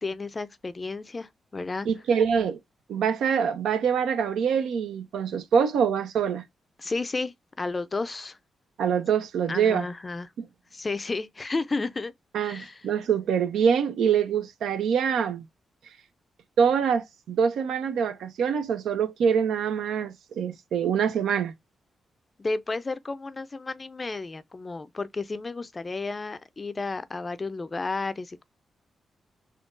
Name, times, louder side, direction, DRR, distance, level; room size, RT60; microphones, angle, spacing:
voice 1, 0.0-1.9 6.8-8.4 9.5-10.3 10.7-12.1 12.4-12.9 22.4-28.4, left 3 dB, 35° left, 0.4 m, -32 dB
voice 2, 1.9-2.6 2.9-6.4 8.8-9.9 10.4-10.5 12.3-15.4 16.6-21.5, right 7 dB, 85° right, 0.5 m, -25 dB
3.6 x 2.3 x 2.4 m
cardioid pair, 60°, 0 cm